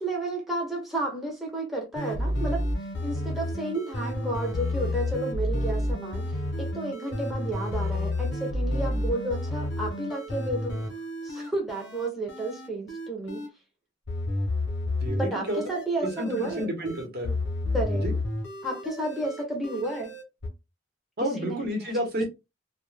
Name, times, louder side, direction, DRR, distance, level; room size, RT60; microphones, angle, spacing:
voice 1, 0.0-2.6 3.0-6.3 6.6-10.8 11.2-13.4 15.2-16.7 17.7-18.1 18.6-20.1 21.2-21.9, right 1 dB, ahead, 0.7 m, -32 dB
sound 1, 1.9-13.5 14.1-20.5, left 1 dB, 60° left, 0.8 m, -31 dB
voice 2, 15.0-15.6 16.0-17.4 18.0-18.1 21.2-22.2, equal, 55° right, 1.0 m, -30 dB
2.3 x 2.2 x 3.2 m
head